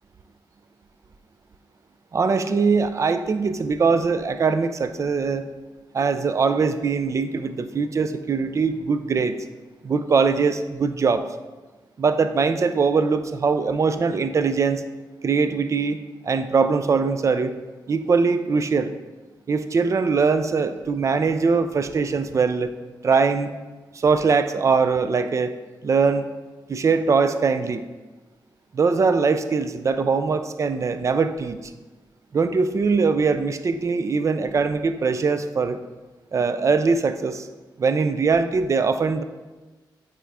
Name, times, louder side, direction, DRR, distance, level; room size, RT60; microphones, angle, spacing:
voice 1, 2.1-5.4 5.9-9.4 9.8-11.3 12.0-14.8 15.2-16.0 16.2-17.5 17.9-18.9 19.5-22.7 23.0-23.5 23.9-25.5 25.8-26.2 26.7-27.8 28.7-31.6 32.3-35.8 36.3-37.5 37.8-39.2, right 5 dB, 40° right, 10 dB, 0.4 m, -21 dB
8.7 x 3.7 x 3.5 m, 1.2 s
wide cardioid pair, 130°, 8 cm